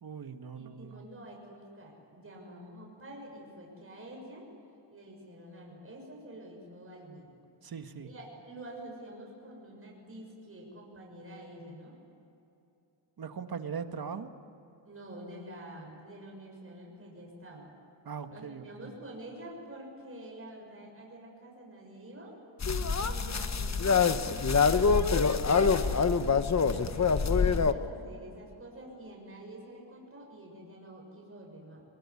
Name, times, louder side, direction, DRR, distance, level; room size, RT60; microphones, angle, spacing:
voice 1, 0.0-1.0 7.6-8.1 13.2-14.3 18.0-18.9, right 6 dB, 50° right, 8 dB, 1.8 m, -40 dB
voice 2, 0.6-4.5 4.9-7.3 8.0-12.0 14.9-17.7 18.3-22.4 23.0-26.4 26.7-31.8, right 1 dB, 30° right, -1 dB, 7.2 m, -47 dB
sound 1, 22.6-27.7, left 5 dB, 35° left, 1.2 m, -25 dB
23.0 x 22.5 x 9.8 m, 2.8 s
cardioid pair, 100°, 47 cm